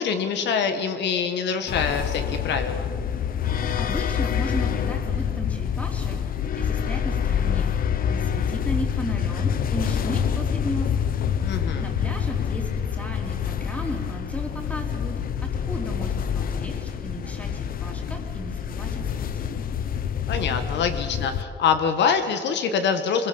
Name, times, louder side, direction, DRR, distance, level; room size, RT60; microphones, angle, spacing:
voice 1, 0.0-2.9 11.4-11.9 20.3-23.3, left 6 dB, 70° left, 8 dB, 1.6 m, -25 dB
sound 1, 1.7-21.4, left 8 dB, 50° left, 0.9 m, -26 dB
voice 2, 3.4-6.2 6.6-7.7 8.1-10.9 11.5-19.6, equal, 5° left, 2 dB, 3.2 m, -35 dB
26.5 x 21.5 x 7.1 m, 2.2 s
cardioid pair, 170°, 19 cm